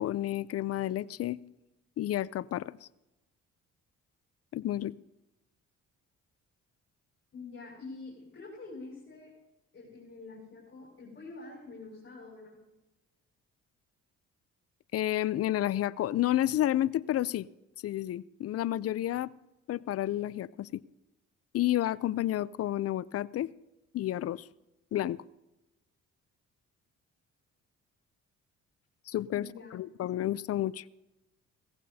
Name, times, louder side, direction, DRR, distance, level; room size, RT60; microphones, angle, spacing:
voice 1, 0.0-1.4 2.0-2.9 4.5-4.9 14.9-17.5 17.8-19.3 19.7-20.8 21.5-23.5 23.9-24.5 24.9-25.2 29.1-30.8, left 13 dB, 55° left, 19 dB, 0.5 m, -30 dB
voice 2, 7.3-9.3 9.7-12.6 29.3-29.8, left 3 dB, 35° left, -5 dB, 5.7 m, -46 dB
17.5 x 15.0 x 2.8 m, 0.99 s
cardioid pair, 90°, 30 cm